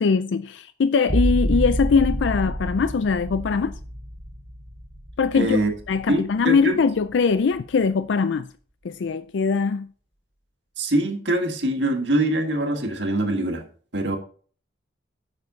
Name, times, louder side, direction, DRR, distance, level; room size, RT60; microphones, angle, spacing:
voice 1, 0.0-3.7 5.2-5.6 5.9-8.5 8.8-9.9, left 5 dB, 80° left, 0.4 m, -21 dB
sound 1, 1.1-6.5 7.0-7.6, equal, 35° right, 1.5 m, -28 dB
voice 2, 5.3-5.7 6.1-6.8 10.8-13.6 13.9-14.2, right 1 dB, 75° right, 1.8 m, -23 dB
9.6 x 7.1 x 4.0 m
head